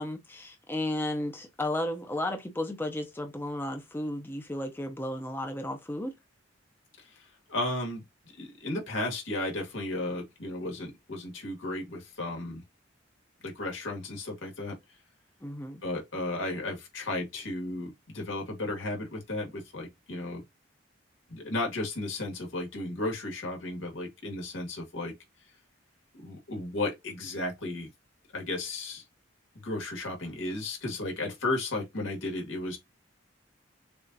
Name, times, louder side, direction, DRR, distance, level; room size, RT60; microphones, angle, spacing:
voice 1, 0.0-6.1 15.4-15.8, left 1 dB, 10° left, 0.6 m, -33 dB
voice 2, 7.5-8.0 8.4-12.6 13.4-14.8 15.8-20.4 21.3-25.1 26.2-27.9 28.3-29.0 29.6-32.8, left 2 dB, 90° left, 2.0 m, -34 dB
6.8 x 2.5 x 2.6 m
head